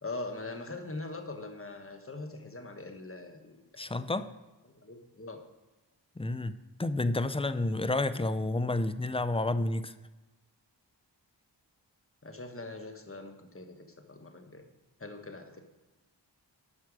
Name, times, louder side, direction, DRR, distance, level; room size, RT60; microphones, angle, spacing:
voice 1, 0.0-3.8 4.8-5.4 12.2-14.6 15.0-15.6, left 2 dB, 30° left, 5 dB, 1.4 m, -42 dB
voice 2, 3.8-4.3 6.2-9.9, left 2 dB, 15° left, 13 dB, 0.5 m, -30 dB
11.0 x 6.0 x 4.8 m, 1.1 s
cardioid pair, 40°, 44 cm